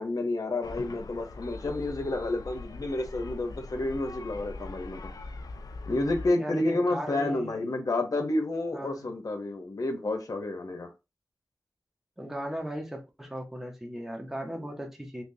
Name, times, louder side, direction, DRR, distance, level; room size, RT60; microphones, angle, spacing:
voice 1, 0.0-5.1 5.9-10.9 14.6-14.7, left 2 dB, 70° left, 0.8 m, -30 dB
sound 1, 0.6-6.3, left 3 dB, 85° left, 0.4 m, -42 dB
voice 2, 6.4-7.5 8.7-9.1 12.2-15.2, equal, 5° right, 0.9 m, -37 dB
3.4 x 3.0 x 2.7 m
wide cardioid pair, 70°, 6 cm